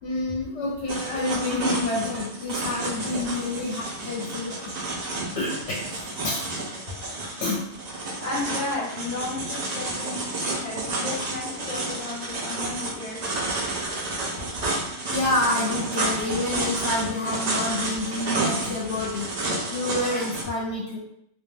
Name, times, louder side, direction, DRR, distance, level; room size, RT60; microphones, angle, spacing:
voice 1, 0.0-4.9 5.4-6.4 7.4-7.6 15.1-19.3 19.7-21.0, left 2 dB, 65° left, -4 dB, 0.9 m, -28 dB
sound 1, 0.9-20.4, right 2 dB, 55° right, 0.4 m, -30 dB
voice 2, 8.2-13.4, left 2 dB, 40° left, -8 dB, 0.9 m, -33 dB
2.5 x 2.2 x 3.2 m, 0.73 s
omnidirectional pair, 1.3 m